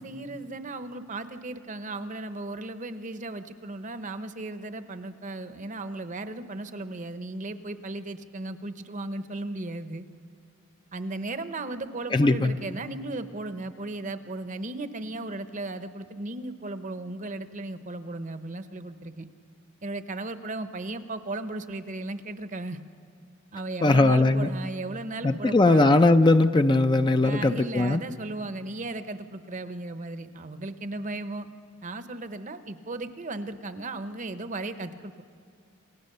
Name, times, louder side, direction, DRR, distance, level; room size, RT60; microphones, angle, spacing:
voice 1, 0.0-10.0 10.9-19.3 19.8-22.8 23.5-25.8 27.2-31.5 31.8-35.2, right 2 dB, 40° right, 10 dB, 0.8 m, -36 dB
voice 2, 12.1-12.5 23.8-24.5 25.2-28.0, left 2 dB, 20° left, 9 dB, 0.4 m, -20 dB
28.0 x 16.5 x 6.7 m, 2.3 s
head